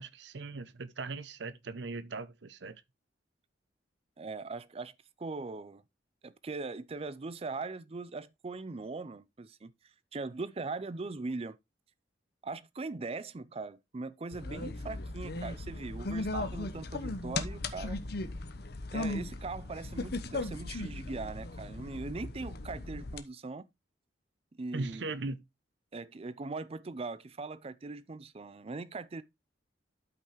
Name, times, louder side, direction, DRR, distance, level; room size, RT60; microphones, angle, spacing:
voice 1, 0.0-2.8 24.7-25.4, right 3 dB, 75° right, 0.7 m, -39 dB
voice 2, 4.2-5.8 6.2-9.7 10.1-11.6 12.4-18.0 18.9-23.7 24.6-25.1 25.9-29.2, right 3 dB, 35° right, 0.5 m, -40 dB
sound 1, 14.3-23.2, left 2 dB, 65° left, 1.0 m, -37 dB
12.0 x 5.4 x 3.1 m
head